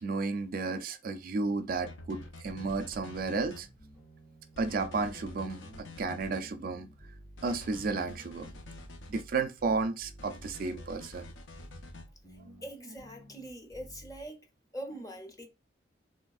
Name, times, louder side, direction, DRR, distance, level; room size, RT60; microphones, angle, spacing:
voice 1, 0.0-3.7 4.6-5.6 6.0-6.9 7.4-8.5 9.1-11.3 12.4-12.6, right 4 dB, 50° right, 0.4 m, -33 dB
sound 1, 1.7-3.6 4.6-6.4 7.4-9.3 10.2-12.1, left 2 dB, 90° left, 0.5 m, -48 dB
sound 2, 3.6-14.3, equal, 55° left, 1.9 m, -53 dB
voice 2, 12.6-14.5 14.7-15.5, right 1 dB, 20° left, 0.6 m, -43 dB
3.3 x 3.1 x 2.3 m
head